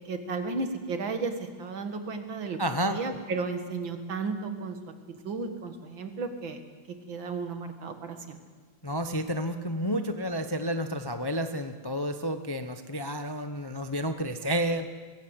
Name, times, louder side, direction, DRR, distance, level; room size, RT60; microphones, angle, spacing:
voice 1, 0.1-2.6 2.9-4.8 5.2-6.6 7.1-8.4, right 4 dB, 85° right, 6 dB, 2.4 m, -33 dB
voice 2, 2.6-3.0 8.8-14.9, equal, 25° left, 7 dB, 0.4 m, -30 dB
22.5 x 16.0 x 8.1 m, 1.5 s
omnidirectional pair, 2.1 m